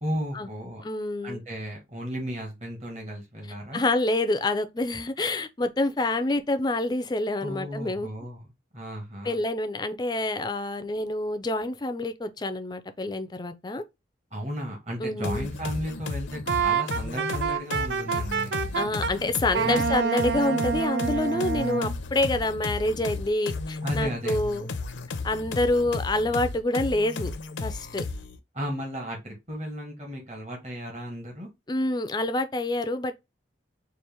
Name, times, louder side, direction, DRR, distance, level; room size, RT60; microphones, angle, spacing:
voice 1, 0.0-0.8 1.2-3.8 7.4-9.4 14.3-18.5 19.5-19.9 23.8-24.4 28.5-31.5, equal, 35° right, 1.2 m, -34 dB
voice 2, 0.8-1.4 3.7-8.1 9.2-13.8 15.0-15.5 18.7-24.7 25.2-27.3 27.6-28.0 31.7-33.2, left 2 dB, 20° left, 0.4 m, -27 dB
sound 1, 15.2-28.4, left 3 dB, 75° left, 0.6 m, -34 dB
Wind instrument woodwind instrument, 16.5-19.1 19.5-21.9, right 6 dB, 60° right, 0.5 m, -27 dB
4.4 x 2.5 x 3.4 m
head